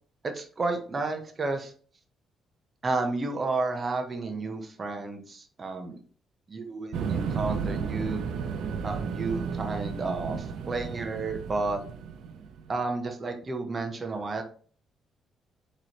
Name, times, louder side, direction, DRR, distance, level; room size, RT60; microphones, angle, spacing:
voice 1, 0.2-1.7 2.8-6.0 6.5-8.2 8.8-11.8 12.7-14.4, right 3 dB, 35° right, 4 dB, 0.7 m, -31 dB
sound 1, 6.9-12.7, right 6 dB, 75° right, 0.4 m, -33 dB
3.9 x 3.1 x 2.9 m, 0.43 s
cardioid pair, 90°, 0 cm